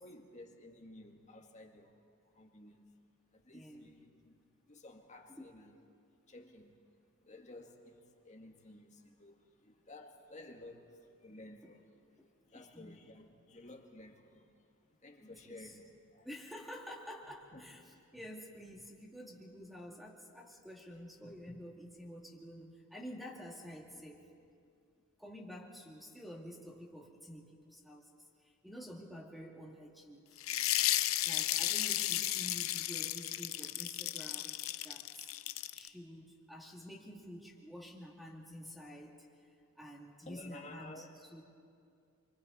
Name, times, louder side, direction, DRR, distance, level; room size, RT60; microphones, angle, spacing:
voice 1, 0.0-1.9 2.4-2.8 3.3-4.1 4.7-5.7 6.3-6.7 7.3-7.9 8.3-11.8 12.5-14.4 15.0-15.8 16.1-16.3 17.5-17.6 40.3-41.1, left 2 dB, 35° left, 3 dB, 1.8 m, -53 dB
voice 2, 3.5-3.9 5.3-5.6 6.4-6.5 11.6-11.8 12.2-13.1 15.2-15.8 16.2-24.2 25.2-30.4 31.2-35.3 35.7-39.3 39.8-41.4, equal, ahead, -1 dB, 2.4 m, -50 dB
sound 1, 30.4-35.9, left 14 dB, 85° left, 0.6 m, -34 dB
29.0 x 24.5 x 4.2 m, 2.4 s
head